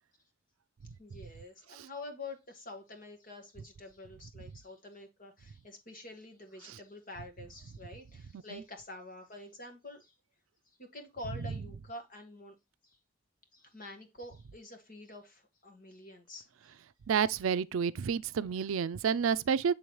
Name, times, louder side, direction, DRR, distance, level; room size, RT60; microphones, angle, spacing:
voice 1, 1.0-10.1 10.8-12.5 12.8-13.0 13.5-16.8, left 2 dB, 40° left, 1.6 m, -47 dB
voice 2, 17.1-19.7, right 7 dB, 85° right, 0.4 m, -29 dB
8.4 x 3.7 x 3.1 m
head